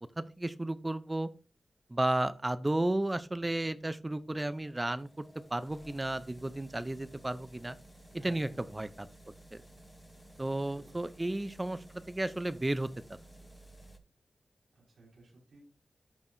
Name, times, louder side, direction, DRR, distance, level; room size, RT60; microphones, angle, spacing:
voice 1, 0.2-1.3 1.9-5.2 5.5-7.7 8.1-8.9 9.5-9.6 10.4-12.9, right 1 dB, 20° right, 13 dB, 0.5 m, -33 dB
sound 1, 3.8-14.0, right 1 dB, 15° left, 0.9 m, -55 dB
voice 2, 8.1-8.6 10.5-11.1 14.7-15.6, right 2 dB, 85° right, -5 dB, 4.6 m, -56 dB
12.5 x 4.6 x 2.6 m, 0.34 s
wide cardioid pair, 95°, 0 cm